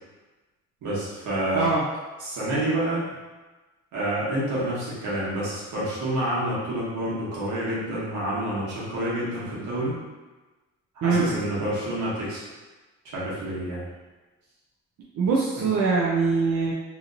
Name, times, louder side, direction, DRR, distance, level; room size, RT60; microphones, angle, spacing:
voice 1, 0.8-1.7 2.2-3.0 3.9-9.9 10.9-12.4 13.0-13.8 15.6-15.7, right 1 dB, 80° right, -8 dB, 1.3 m, -28 dB
voice 2, 1.5-1.8 11.0-11.2 15.2-16.7, right 4 dB, 60° right, -5 dB, 0.5 m, -22 dB
2.9 x 2.8 x 2.5 m, 1.2 s
cardioid pair, 90°, 30 cm